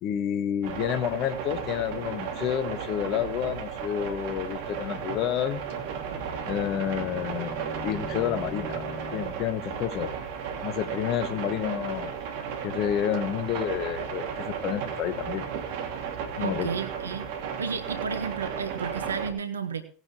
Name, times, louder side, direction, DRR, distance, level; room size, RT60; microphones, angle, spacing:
voice 1, 0.0-5.7 6.4-8.8 9.1-10.1 10.6-12.1 12.6-15.4 16.4-16.7, left 10 dB, 45° left, 11 dB, 1.3 m, -29 dB
sound 1, 0.6-19.3, right 7 dB, 60° right, 2.5 m, -34 dB
Bowed string instrument, 5.6-9.4, equal, 10° right, 7.2 m, -42 dB
voice 2, 16.4-17.3 17.6-19.8, right 6 dB, 80° right, 10 dB, 1.3 m, -32 dB
19.0 x 9.7 x 3.2 m, 0.42 s
figure-of-eight pair, 80°, 0 cm